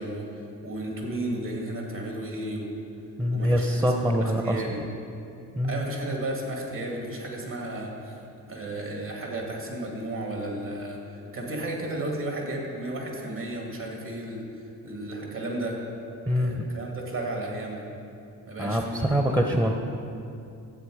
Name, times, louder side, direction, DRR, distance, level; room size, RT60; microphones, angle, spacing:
voice 1, 0.0-2.8 3.3-4.8 5.6-8.2 8.5-14.4 14.8-15.8 16.3-17.8 18.5-19.4, right 1 dB, 60° right, 0 dB, 2.4 m, -33 dB
voice 2, 3.2-4.9 5.6-5.8 16.3-16.7 18.6-19.7, equal, 10° right, 3 dB, 0.8 m, -25 dB
13.0 x 7.8 x 5.0 m, 2.7 s
cardioid pair, 75°, 37 cm